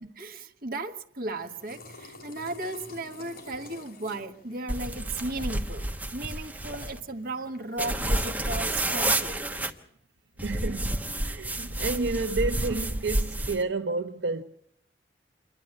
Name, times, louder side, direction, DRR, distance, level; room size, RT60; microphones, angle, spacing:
voice 1, 0.0-9.5, right 2 dB, 55° right, 1.3 m, -36 dB
sound 1, 1.3-8.4, left 2 dB, 55° left, 3.4 m, -49 dB
sound 2, 4.7-7.0 7.8-9.7 10.4-13.6, right 1 dB, 10° right, 1.1 m, -30 dB
voice 2, 10.4-11.0 11.3-14.4, right 3 dB, 80° right, 0.7 m, -30 dB
27.5 x 11.0 x 8.8 m
head